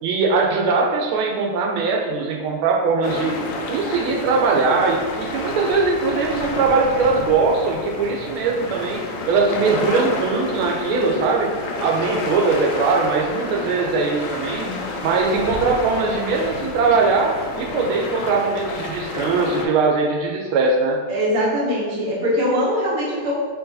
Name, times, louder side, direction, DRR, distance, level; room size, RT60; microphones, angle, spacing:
voice 1, 0.0-3.4 3.7-11.5 11.8-14.7 15.0-21.0, right 4 dB, 85° right, 1 dB, 1.4 m, -20 dB
sound 1, 3.0-19.7, left 2 dB, 75° left, 1.2 m, -30 dB
voice 2, 21.1-23.3, equal, 45° right, -6 dB, 0.8 m, -22 dB
4.6 x 3.6 x 2.6 m, 1.5 s
omnidirectional pair, 2.3 m